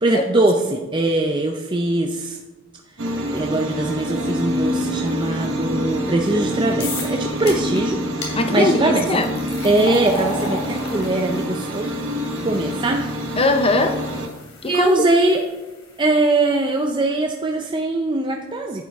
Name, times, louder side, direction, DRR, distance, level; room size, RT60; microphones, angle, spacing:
voice 1, 0.0-2.4 3.3-9.1 9.6-11.9 12.4-13.1 14.7-15.4 16.0-18.9, right 2 dB, 20° right, 2 dB, 0.5 m, -21 dB
sound 1, 3.0-14.3, equal, 60° right, 1.2 m, -26 dB
sound 2, 6.8-7.2 7.5-7.8 8.2-8.3 9.0-16.1, left 2 dB, 85° left, 3.1 m, -35 dB
voice 2, 8.3-9.5 13.4-14.0 14.6-14.9, left 2 dB, 25° left, 7 dB, 0.7 m, -20 dB
11.0 x 8.9 x 3.5 m, 1.2 s
head